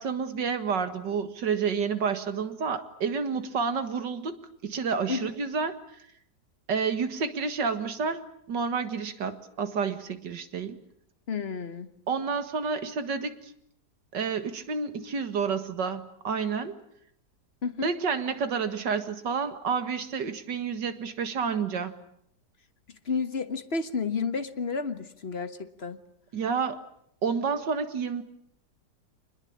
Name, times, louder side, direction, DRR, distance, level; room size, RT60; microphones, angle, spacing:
voice 1, 0.0-5.7 6.7-8.2 8.5-10.8 12.1-13.3 14.1-16.8 17.8-21.9 26.3-26.8 27.2-28.2, right 5 dB, 85° right, 10 dB, 2.4 m, -29 dB
voice 2, 11.3-11.9 17.6-17.9 23.0-26.0, left 5 dB, 40° left, 10 dB, 1.6 m, -31 dB
26.5 x 21.0 x 8.7 m, 0.71 s
omnidirectional pair, 1.8 m